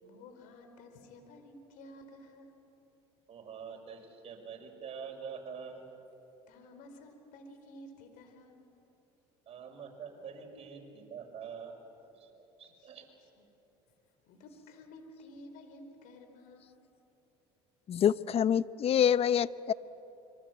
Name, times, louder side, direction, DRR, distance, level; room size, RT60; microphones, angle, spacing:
voice 1, 0.0-2.5 6.5-8.7 12.8-12.9 13.4-13.5 14.3-16.8, left 1 dB, 70° left, 6 dB, 4.3 m, -52 dB
voice 2, 3.3-5.8 9.5-11.8 12.1-13.1, right 6 dB, 45° right, 2 dB, 6.3 m, -45 dB
voice 3, 17.9-19.7, left 9 dB, 45° left, 17 dB, 0.8 m, -26 dB
26.0 x 24.0 x 8.8 m, 3.0 s
hypercardioid pair, 75°, 14 cm